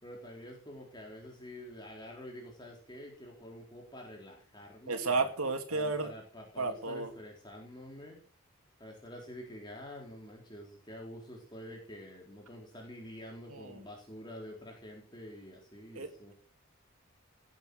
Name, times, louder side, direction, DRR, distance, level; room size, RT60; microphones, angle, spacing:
voice 1, 0.0-5.3 5.7-8.2 8.8-16.3, equal, 20° left, -1 dB, 4.2 m, -48 dB
voice 2, 4.9-6.1 6.6-7.1 13.5-13.8 15.9-16.3, right 3 dB, 85° right, 6 dB, 2.8 m, -33 dB
19.0 x 9.4 x 6.6 m, 0.41 s
head